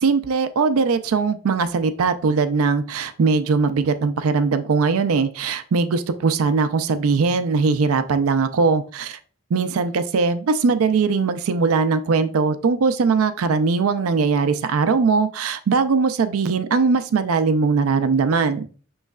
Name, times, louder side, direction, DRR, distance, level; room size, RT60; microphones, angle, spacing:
voice 1, 0.0-9.2 9.5-18.7, right 4 dB, 85° right, 11 dB, 0.4 m, -20 dB
6.3 x 3.1 x 2.3 m, 0.39 s
head